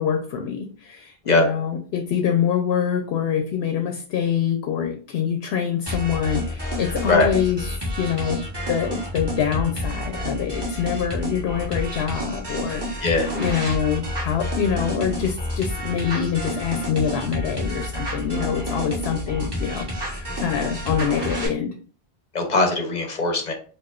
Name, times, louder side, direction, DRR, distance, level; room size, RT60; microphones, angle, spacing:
voice 1, 0.0-7.6 8.0-8.4 8.7-21.7, left 8 dB, 80° left, 5 dB, 0.8 m, -25 dB
sound 1, 5.9-21.5, equal, 25° right, 1.2 m, -29 dB
voice 2, 13.0-13.3 20.4-20.5 22.3-23.5, left 3 dB, 45° left, 3 dB, 0.8 m, -20 dB
4.7 x 2.5 x 2.3 m, 0.41 s
omnidirectional pair, 1.0 m